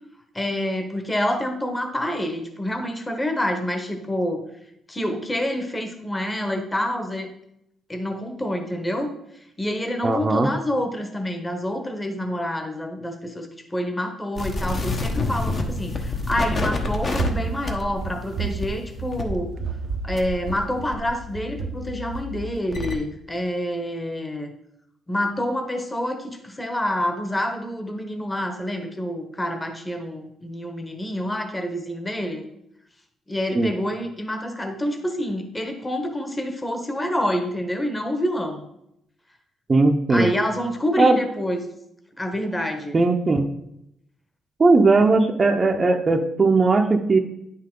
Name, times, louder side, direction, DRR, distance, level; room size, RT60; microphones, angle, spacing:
voice 1, 0.3-4.4 4.9-7.3 7.9-9.1 9.6-19.5 20.0-24.5 25.1-32.5 33.3-38.7 40.1-41.6 42.2-43.0, left 1 dB, 15° left, 5 dB, 1.1 m, -27 dB
voice 2, 10.0-10.5 33.5-33.7 39.7-40.3 41.0-41.2 42.9-43.5 44.6-47.2, right 3 dB, 30° right, 3 dB, 0.7 m, -18 dB
sound 1, 14.4-20.6 20.9-22.9, left 3 dB, 40° left, 1.1 m, -29 dB
Run, 15.7-22.7, right 7 dB, 70° right, 0.6 m, -33 dB
9.7 x 5.7 x 3.8 m, 0.79 s
cardioid pair, 90°, 0 cm